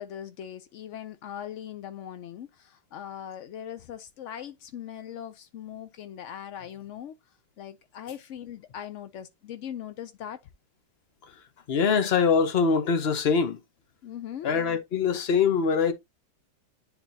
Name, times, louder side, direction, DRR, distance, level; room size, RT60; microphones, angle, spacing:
voice 1, 0.0-7.1 7.6-10.4 14.0-14.5, left 10 dB, 80° left, 0.6 m, -40 dB
voice 2, 11.7-13.6 14.4-15.9, left 5 dB, 45° left, 0.9 m, -23 dB
10.5 x 4.0 x 2.7 m
omnidirectional pair, 2.0 m